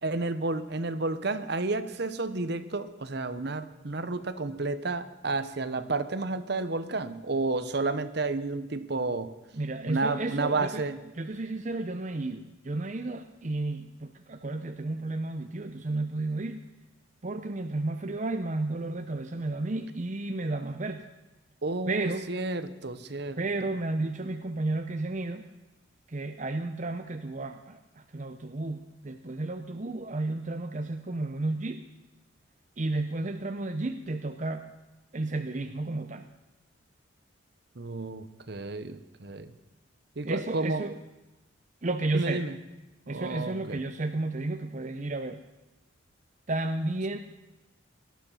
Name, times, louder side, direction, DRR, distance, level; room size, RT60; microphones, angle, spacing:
voice 1, 0.0-9.3 9.9-11.0 21.6-23.4 37.8-39.5 40.2-40.8 42.1-42.6 43.1-43.8, right 3 dB, 55° right, 12 dB, 0.9 m, -31 dB
voice 2, 9.5-10.9 11.2-16.6 17.2-21.1 21.9-22.3 23.4-25.4 26.1-31.8 32.8-34.6 35.1-36.3 40.2-40.9 41.8-42.4 43.1-45.4 46.5-47.2, right 2 dB, 35° right, 7 dB, 0.6 m, -32 dB
19.0 x 12.5 x 5.7 m, 1.0 s
head